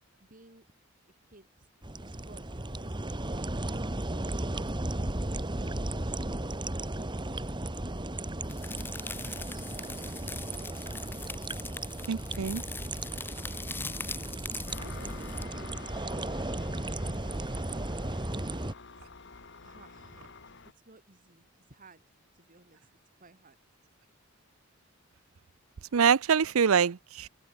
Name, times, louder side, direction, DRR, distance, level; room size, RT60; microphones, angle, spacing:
voice 1, 0.2-0.7 1.2-1.7 2.0-3.5 4.2-8.2 8.7-10.9 19.6-22.0 22.3-23.6, right 2 dB, 40° right, 3.3 m, -56 dB
sound 1, 1.8-18.7, right 1 dB, 20° right, 1.5 m, -35 dB
sound 2, 8.5-15.4, left 4 dB, 10° left, 0.4 m, -42 dB
voice 2, 12.1-12.6 25.9-27.3, right 7 dB, 85° right, 0.6 m, -25 dB
Engine, 14.7-20.7, left 3 dB, 60° left, 3.2 m, -48 dB
head